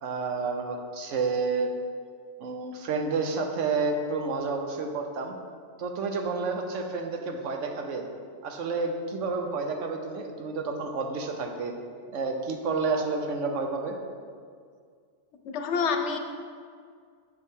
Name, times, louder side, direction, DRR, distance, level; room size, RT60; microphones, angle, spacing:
voice 1, 0.0-1.7 2.4-5.3 5.8-8.1 8.4-11.7 12.1-14.0, right 4 dB, 80° right, 4 dB, 1.1 m, -30 dB
voice 2, 15.4-16.2, left 5 dB, 70° left, 5 dB, 0.9 m, -27 dB
6.7 x 6.6 x 3.6 m, 2.1 s
omnidirectional pair, 1.3 m